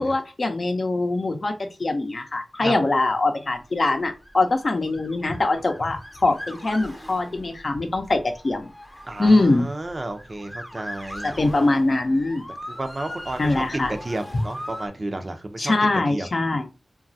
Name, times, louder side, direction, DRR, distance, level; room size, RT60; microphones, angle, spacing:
voice 1, 0.0-8.7 9.2-9.7 11.2-12.4 13.4-13.9 15.6-16.7, left 2 dB, 55° left, 5 dB, 0.6 m, -23 dB
Motor vehicle (road) / Siren, 3.7-14.9, equal, 10° left, 0.6 m, -40 dB
voice 2, 9.1-11.4 12.7-13.6 13.9-15.7 16.1-16.3, right 2 dB, 40° right, 7 dB, 0.5 m, -32 dB
2.9 x 2.3 x 2.6 m, 0.29 s
cardioid pair, 45°, 0 cm